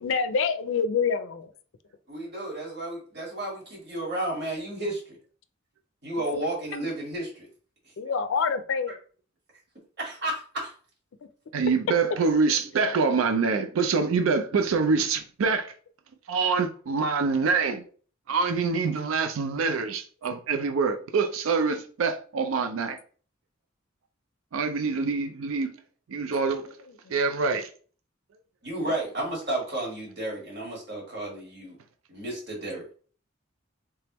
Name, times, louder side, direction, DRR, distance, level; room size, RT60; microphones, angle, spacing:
voice 1, 0.0-1.5 8.0-8.9, left 5 dB, 65° left, 0.4 m, -26 dB
voice 2, 2.1-5.2 6.0-7.5 10.0-10.7 28.6-31.8 32.1-32.8, right 1 dB, 55° right, 1.7 m, -32 dB
voice 3, 11.5-15.7 16.3-17.8 18.3-23.0 24.5-25.7 26.1-26.7 27.1-27.7, right 4 dB, 90° right, 0.4 m, -25 dB
3.4 x 3.3 x 2.9 m
head